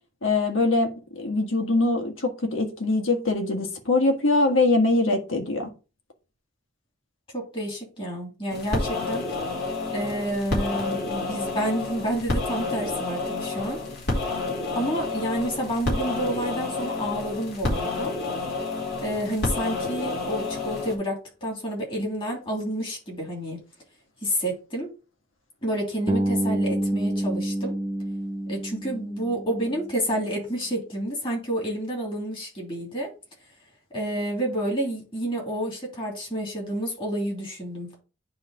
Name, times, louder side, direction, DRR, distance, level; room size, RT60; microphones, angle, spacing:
voice 1, 0.2-5.7, left 2 dB, 85° left, 1.6 m, -23 dB
voice 2, 7.3-9.2 9.9-13.8 14.7-18.1 19.0-23.6 24.2-24.9 25.6-27.7 28.5-33.1 33.9-38.0, right 1 dB, 25° left, 2.9 m, -29 dB
sound 1, 8.5-20.9, left 3 dB, 50° left, 2.6 m, -29 dB
Bass guitar, 26.1-30.0, right 1 dB, 15° right, 0.6 m, -28 dB
9.4 x 3.3 x 4.8 m
head